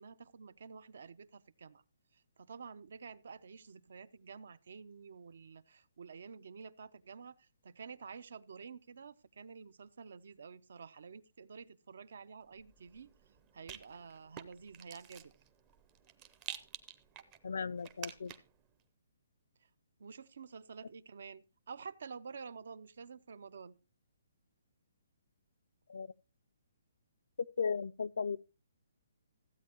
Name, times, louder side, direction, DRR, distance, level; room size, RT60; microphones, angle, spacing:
voice 1, 0.0-1.8 2.1-13.1 13.5-15.3 20.0-23.8, right 5 dB, 60° right, 0.7 m, -50 dB
Rattle, 12.5-18.6, right 9 dB, 20° right, 0.6 m, -50 dB
voice 2, 17.4-18.3 25.9-26.1 27.6-28.4, left 5 dB, 70° left, 0.4 m, -36 dB
15.0 x 8.5 x 3.0 m
hypercardioid pair, 170°, 0 cm